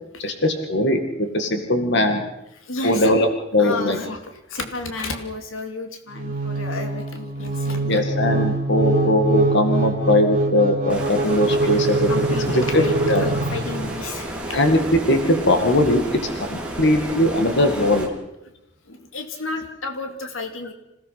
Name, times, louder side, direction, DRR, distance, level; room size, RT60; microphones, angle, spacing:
voice 1, 0.2-2.2 2.8-4.0 7.8-12.1 12.5-13.2 14.5-16.0 16.5-18.1, left 1 dB, 60° left, 6 dB, 2.2 m, -20 dB
voice 2, 2.6-3.1 3.6-4.2 4.5-8.0 12.0-14.6 18.9-20.7, left 3 dB, 85° left, 6 dB, 2.5 m, -32 dB
sound 1, 6.1-14.1, right 2 dB, 45° right, 3.2 m, -23 dB
Stream, 10.9-18.1, right 1 dB, 5° right, 3.3 m, -32 dB
27.0 x 17.0 x 5.9 m, 0.86 s
head